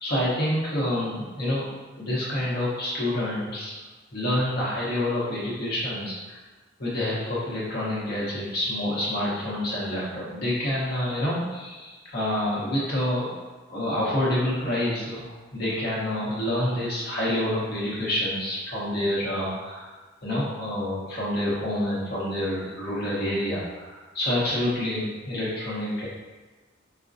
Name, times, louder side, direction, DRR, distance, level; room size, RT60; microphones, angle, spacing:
voice 1, 0.0-1.6 2.0-3.7 4.1-6.4 6.8-13.3 13.7-15.2 15.5-19.9 20.2-26.1, left 1 dB, 55° left, -7 dB, 1.0 m, -27 dB
4.9 x 2.2 x 2.5 m, 1.3 s
head